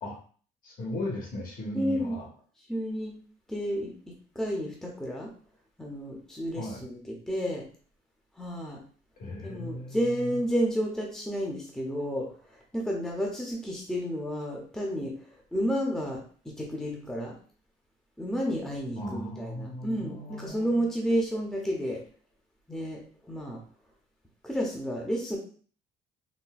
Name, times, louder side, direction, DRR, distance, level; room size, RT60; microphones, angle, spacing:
voice 1, 0.6-2.3 6.5-6.8 9.2-10.4 19.0-20.8, left 1 dB, 55° left, 0 dB, 1.1 m, -37 dB
voice 2, 1.7-2.2 2.7-3.1 3.5-5.3 5.8-7.6 8.4-8.8 9.4-15.1 15.5-17.4 18.2-22.0 22.7-23.6 24.4-25.4, equal, 5° left, -1 dB, 0.7 m, -31 dB
4.0 x 2.2 x 2.2 m, 0.43 s
cardioid pair, 110°, 17 cm